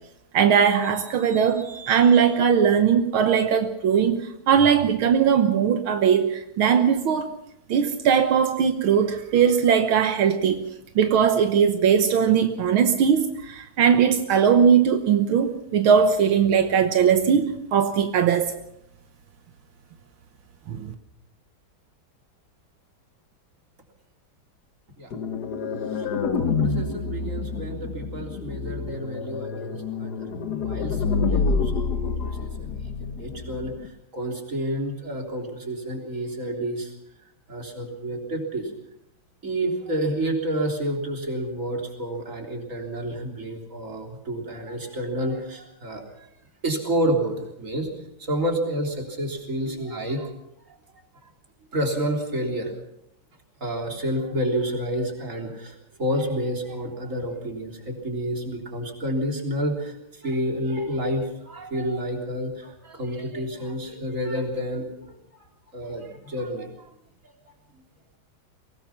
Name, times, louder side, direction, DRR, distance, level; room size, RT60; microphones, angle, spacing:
voice 1, 0.3-7.3 7.7-10.7 11.0-18.6 20.7-20.9, right 7 dB, 80° right, 7 dB, 1.9 m, -20 dB
sound 1, 25.1-33.9, left 4 dB, 55° left, 1.7 m, -28 dB
voice 2, 26.3-30.3 30.6-32.7 33.0-36.9 37.5-38.7 39.4-46.3 46.6-47.9 48.2-50.3 51.7-52.7 53.6-65.5 65.7-66.9, right 1 dB, 40° right, 1 dB, 3.9 m, -29 dB
23.5 x 19.0 x 5.9 m, 0.78 s
omnidirectional pair, 2.2 m